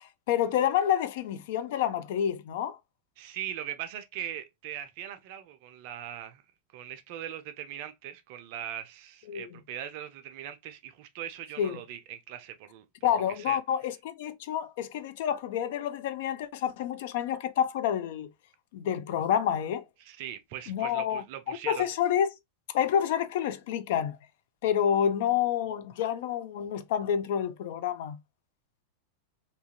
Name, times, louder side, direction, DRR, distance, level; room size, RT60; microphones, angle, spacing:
voice 1, 0.0-2.8 9.3-9.5 11.6-11.8 13.0-18.3 18.7-19.8 20.7-22.3 22.7-24.2 24.6-28.2, left 9 dB, 50° left, 0.3 m, -28 dB
voice 2, 3.2-6.4 6.7-12.9 13.1-13.6 20.0-21.9, right 11 dB, 50° right, 0.4 m, -40 dB
2.7 x 2.4 x 2.6 m
figure-of-eight pair, 90°, 0 cm